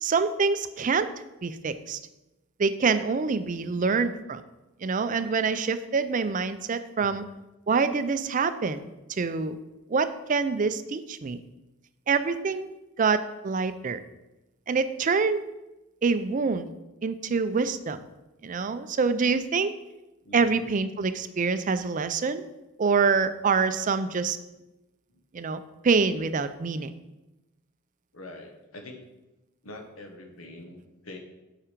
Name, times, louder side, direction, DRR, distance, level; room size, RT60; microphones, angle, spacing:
voice 1, 0.0-1.1 1.4-2.0 2.6-4.4 4.8-7.2 7.7-9.6 9.9-11.4 12.1-12.7 13.0-14.0 14.7-15.4 16.0-16.7 17.0-18.0 18.4-19.7 20.3-22.4 22.8-24.4 25.3-26.9, right 5 dB, 40° right, 11 dB, 0.4 m, -26 dB
voice 2, 3.7-4.0 7.0-7.1 9.2-9.3 20.2-20.7 25.1-25.2 28.1-29.0 29.6-31.2, left 2 dB, 85° left, 3 dB, 1.2 m, -45 dB
7.3 x 4.9 x 5.0 m, 0.99 s
head